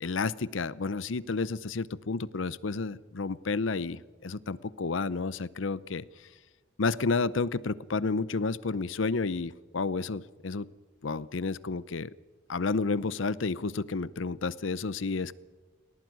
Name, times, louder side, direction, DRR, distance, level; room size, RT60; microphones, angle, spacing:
voice 1, 0.0-6.0 6.8-10.7 11.0-12.1 12.5-15.3, left 4 dB, 80° left, 18 dB, 0.7 m, -31 dB
20.0 x 18.0 x 9.4 m, 1.2 s
head